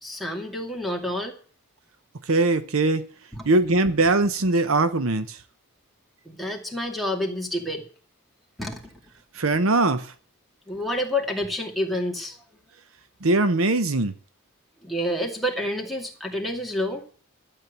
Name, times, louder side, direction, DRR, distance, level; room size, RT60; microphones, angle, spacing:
voice 1, 0.0-1.3 3.3-3.5 6.3-7.8 8.6-8.9 10.7-12.4 14.8-17.0, left 1 dB, ahead, 2.4 m, -28 dB
voice 2, 2.3-3.1 3.4-5.4 9.3-10.1 13.2-14.1, right 2 dB, 65° right, 0.8 m, -21 dB
12.5 x 7.6 x 8.2 m
head